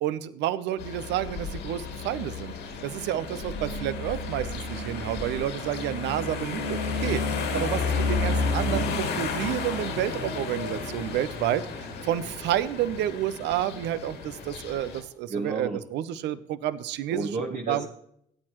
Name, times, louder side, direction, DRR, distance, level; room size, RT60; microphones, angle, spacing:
voice 1, 0.0-2.5 2.8-11.7 12.0-17.3 17.7-17.9, right 12 dB, 70° right, 15 dB, 0.7 m, -30 dB
sound 1, 0.8-15.0, left 3 dB, 70° left, 2.3 m, -32 dB
voice 2, 7.5-7.8 15.3-15.8 17.1-17.9, right 3 dB, 45° right, 1 dB, 1.3 m, -32 dB
17.0 x 8.9 x 3.0 m, 0.73 s
hypercardioid pair, 55°, 19 cm